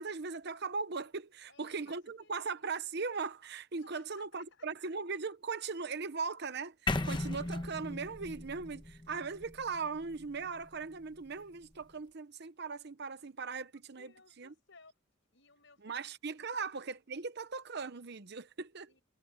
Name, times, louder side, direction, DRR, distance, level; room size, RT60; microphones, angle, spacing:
voice 1, 0.0-14.1 14.4-14.5 15.8-18.9, right 4 dB, 55° right, 0.9 m, -39 dB
voice 2, 1.5-2.7 3.8-4.7 14.0-15.0 15.3-16.7 18.9-19.0, left 4 dB, 60° left, 6.9 m, -61 dB
sound 1, 6.9-10.8, left 2 dB, 20° left, 1.1 m, -37 dB
head